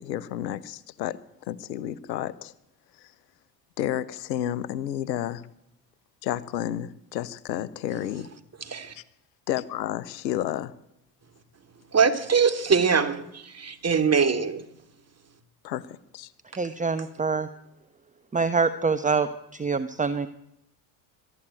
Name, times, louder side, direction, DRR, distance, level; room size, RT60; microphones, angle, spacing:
voice 1, 0.0-2.5 3.0-3.1 3.8-5.4 6.2-8.3 8.9-9.0 9.5-10.7 15.6-16.3, left 12 dB, 85° left, 1.0 m, -31 dB
voice 2, 11.9-14.6, right 5 dB, 30° right, 2.8 m, -22 dB
voice 3, 16.6-17.5 18.3-20.3, right 4 dB, 15° right, 1.1 m, -25 dB
22.5 x 13.0 x 9.0 m
hypercardioid pair, 60°, 49 cm